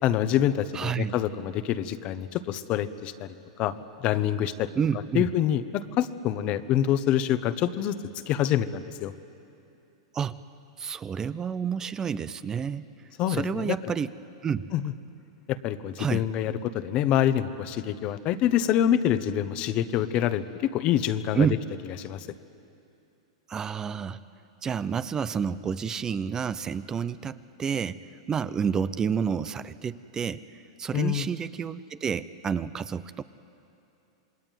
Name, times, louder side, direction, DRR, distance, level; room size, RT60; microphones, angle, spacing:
voice 1, 0.0-3.3 3.6-4.7 5.1-8.0 8.3-9.1 13.2-13.9 14.7-14.9 15.5-21.5 22.0-22.3 30.9-31.3, left 11 dB, 40° left, 12 dB, 1.2 m, -26 dB
voice 2, 0.7-1.2 4.8-5.3 10.1-10.4 10.8-12.9 13.3-14.1 14.4-14.7 16.0-16.2 21.3-21.5 23.5-24.2 24.6-28.0 28.3-33.2, right 7 dB, 20° right, 14 dB, 0.7 m, -29 dB
27.5 x 21.5 x 9.3 m, 2.7 s
hypercardioid pair, 120°, 3 cm